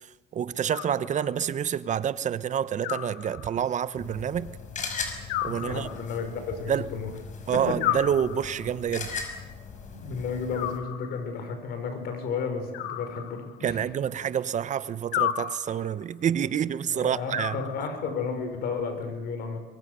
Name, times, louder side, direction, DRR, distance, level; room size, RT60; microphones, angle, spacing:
voice 1, 0.3-4.5 5.4-5.9 6.7-6.9 7.5-9.1 13.6-17.6, right 9 dB, 45° right, 1.0 m, -28 dB
Animal, 0.7-1.6 2.8-3.8 5.3-6.4 7.8-8.8 10.5-11.4 12.7-13.8 15.1-16.0 17.3-18.3, left 12 dB, 90° left, 1.5 m, -33 dB
sound 1, 4.0-10.8, left 5 dB, 45° left, 5.6 m, -39 dB
voice 2, 5.5-7.1 7.7-8.0 9.9-13.8 16.9-19.6, left 5 dB, 70° left, 5.7 m, -33 dB
23.5 x 23.5 x 6.9 m
cardioid pair, 110°, 17 cm